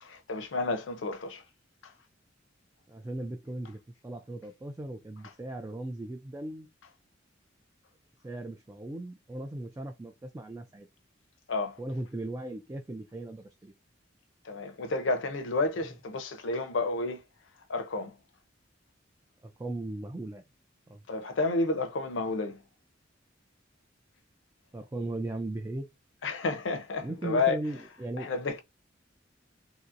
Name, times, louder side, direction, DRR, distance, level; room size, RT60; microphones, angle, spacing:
voice 1, 0.0-1.4 1.8-1.9 11.5-11.8 14.4-17.2 17.7-18.2 21.1-22.6 26.2-27.6 28.2-28.6, left 3 dB, 85° left, 0.6 m, -31 dB
voice 2, 2.9-6.7 8.2-10.9 11.8-13.7 19.4-20.4 20.9-21.0 24.7-25.9 27.0-28.3, right 2 dB, 15° right, 0.3 m, -37 dB
2.9 x 2.7 x 2.5 m
head